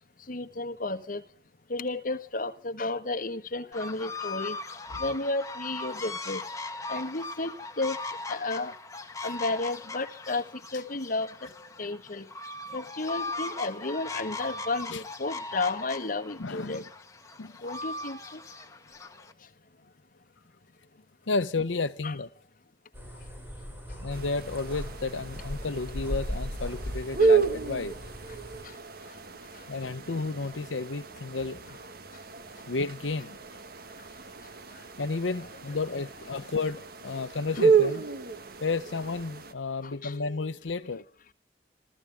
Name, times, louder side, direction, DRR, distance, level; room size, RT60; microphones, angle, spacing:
voice 1, 0.3-1.2 1.7-4.6 5.0-6.4 6.9-8.0 8.3-8.7 9.2-10.4 10.7-11.5 11.8-12.3 12.7-16.8 17.6-18.4 22.0-22.1 27.2-27.3 28.6-28.7 29.5-29.6 34.7-34.8 37.1-37.3 39.8-40.5, left 2 dB, 45° left, 1.4 m, -33 dB
sound 1, 3.7-19.3, left 3 dB, 20° left, 1.7 m, -39 dB
voice 2, 16.4-16.8 17.4-17.5 21.3-22.3 24.0-28.0 29.7-31.8 32.7-33.4 35.0-38.1 38.6-41.0, left 3 dB, 85° left, 0.8 m, -32 dB
sound 2, 22.9-28.6, equal, 10° right, 7.0 m, -38 dB
sound 3, 24.1-39.5, right 5 dB, 55° right, 1.5 m, -31 dB
27.0 x 15.0 x 3.4 m
head